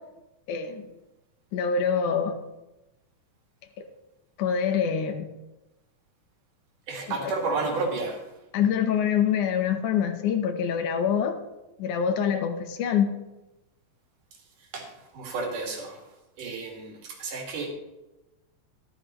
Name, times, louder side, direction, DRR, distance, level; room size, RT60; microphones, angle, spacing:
voice 1, 0.5-0.9 1.5-2.4 4.4-5.3 7.1-7.3 7.8-7.9 8.5-11.4 11.8-13.1, left 7 dB, 75° left, 7 dB, 2.3 m, -25 dB
voice 2, 6.9-8.2 14.7-14.9 15.1-16.0 16.4-17.7, right 3 dB, 70° right, 1 dB, 3.5 m, -31 dB
13.0 x 13.0 x 3.0 m, 1.0 s
omnidirectional pair, 3.8 m